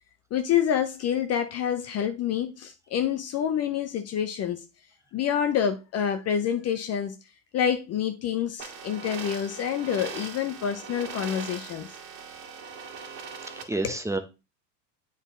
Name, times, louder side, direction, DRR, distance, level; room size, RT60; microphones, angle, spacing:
voice 1, 0.3-4.6 5.1-7.2 7.5-11.9 13.6-14.0, left 9 dB, 30° left, 0.6 m, -27 dB
sound 1, 8.6-13.6, right 6 dB, 60° right, 1.8 m, -40 dB
voice 2, 13.3-14.2, right 2 dB, 5° right, 0.8 m, -30 dB
8.0 x 4.1 x 3.7 m
hypercardioid pair, 90°, 49 cm